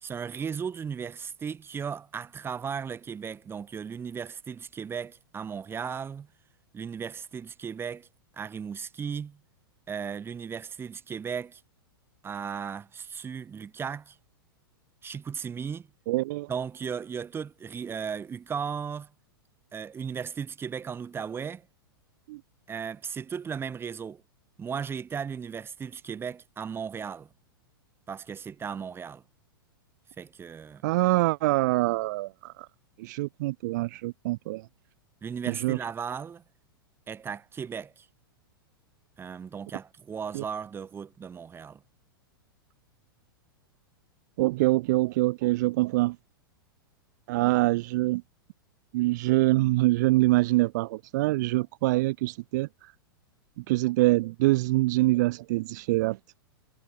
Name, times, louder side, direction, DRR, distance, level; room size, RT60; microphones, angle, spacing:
voice 1, 0.0-6.3 6.7-8.1 8.3-9.4 9.9-11.6 12.2-14.2 15.0-15.9 16.5-19.1 19.7-21.7 22.7-24.2 24.6-27.3 28.1-29.2 30.2-30.8 35.2-36.4 37.1-38.1 39.2-41.8, right 6 dB, 20° right, 3.6 m, -36 dB
voice 2, 16.1-16.5 22.3-22.4 30.8-32.7 33.0-34.7 35.5-35.8 40.3-40.4 44.4-46.2 47.3-48.2 48.9-52.9 53.6-56.2, right 20 dB, 50° right, 0.6 m, -25 dB
figure-of-eight pair, 100°, 12 cm